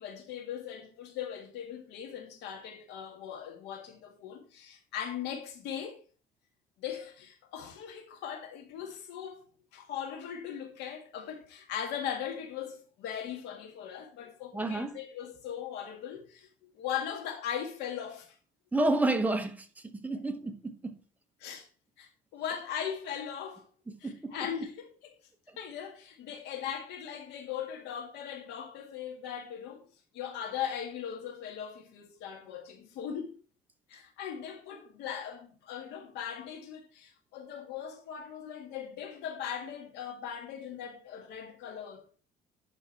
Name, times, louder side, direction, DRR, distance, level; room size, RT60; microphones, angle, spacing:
voice 1, 0.0-6.0 6.8-9.5 9.7-18.3 21.4-21.7 22.0-23.7 24.0-25.1 25.6-29.9 30.1-33.3 33.9-42.1, left 8 dB, 85° left, 2.0 m, -39 dB
voice 2, 14.5-15.0 18.7-21.0 24.0-24.4, right 2 dB, 10° right, 1.1 m, -30 dB
11.0 x 3.7 x 4.4 m
cardioid pair, 110°, 17 cm